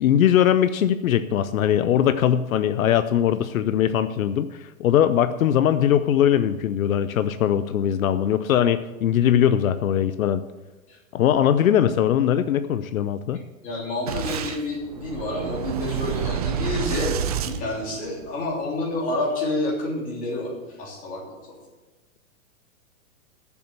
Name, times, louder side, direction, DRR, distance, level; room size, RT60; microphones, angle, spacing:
voice 1, 0.0-10.4 11.1-13.4, left 10 dB, 75° left, 11 dB, 0.7 m, -21 dB
voice 2, 13.6-20.5 20.8-21.2 21.5-21.6, left 2 dB, 20° left, -3 dB, 3.2 m, -29 dB
Boom, 14.1-18.4, right 8 dB, 30° right, 0.4 m, -29 dB
10.5 x 7.3 x 7.9 m, 1.1 s
hypercardioid pair, 160°, 41 cm